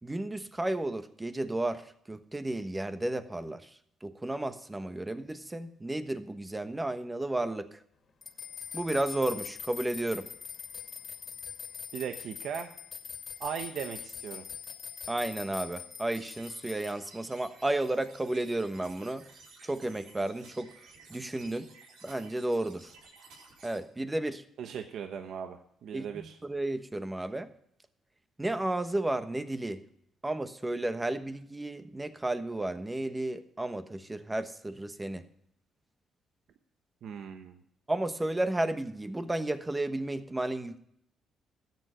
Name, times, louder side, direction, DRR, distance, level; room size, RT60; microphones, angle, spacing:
voice 1, 0.0-7.8 8.7-10.3 15.1-19.2 19.6-20.7 21.1-21.7 22.0-22.9 23.6-24.4 25.9-27.5 28.4-29.8 30.2-35.3 37.9-40.8, right 1 dB, 15° right, 10 dB, 1.1 m, -33 dB
sound 1, 8.2-16.9, left 7 dB, 55° left, 2.2 m, -43 dB
voice 2, 11.9-12.7 13.4-14.4 24.6-26.4 37.0-37.6, right 8 dB, 70° right, 6 dB, 1.0 m, -38 dB
sound 2, 16.0-23.8, right 3 dB, 85° right, 4.0 m, -55 dB
13.5 x 9.4 x 5.0 m, 0.71 s
cardioid pair, 90°, 0 cm